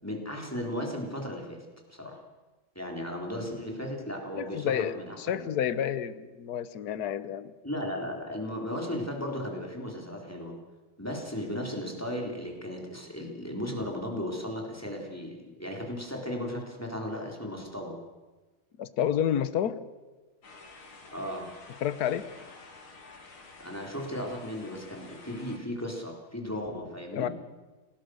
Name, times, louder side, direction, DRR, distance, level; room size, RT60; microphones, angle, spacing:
voice 1, 0.0-2.2 2.8-5.5 7.6-10.6 11.0-18.0 21.1-21.5 23.6-27.3, left 1 dB, 5° left, 1 dB, 3.8 m, -36 dB
voice 2, 4.4-7.5 18.8-19.8 21.8-22.3 27.1-27.3, left 9 dB, 55° left, 14 dB, 1.4 m, -29 dB
sound 1, 20.4-25.6, left 3 dB, 90° left, 3.7 m, -50 dB
27.5 x 18.5 x 6.4 m, 1.2 s
omnidirectional pair, 2.3 m